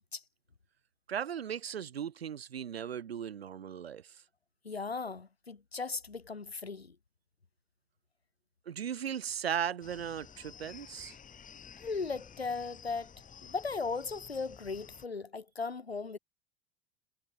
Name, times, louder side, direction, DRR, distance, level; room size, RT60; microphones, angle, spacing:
voice 1, 1.1-4.0 8.7-11.1, right 8 dB, 80° right, 1.1 m, -37 dB
voice 2, 4.6-7.0 11.8-13.1 13.4-16.2, left 4 dB, 90° left, 4.1 m, -37 dB
sound 1, 9.8-15.1, left 7 dB, 25° left, 3.4 m, -52 dB
figure-of-eight pair, 75°, 30 cm